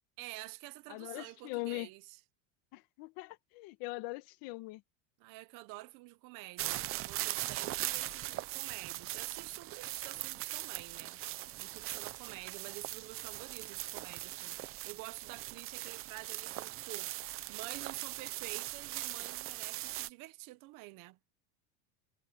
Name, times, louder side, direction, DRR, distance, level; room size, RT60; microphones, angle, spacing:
voice 1, 0.2-2.2 5.2-11.2 11.6-21.2, right 21 dB, 50° right, 1.1 m, -49 dB
voice 2, 0.9-1.9 2.7-4.8, left 20 dB, 55° left, 1.4 m, -41 dB
country man walk in a field, 6.6-20.1, right 16 dB, 30° right, 0.7 m, -40 dB
cardioid pair, 160°, 43 cm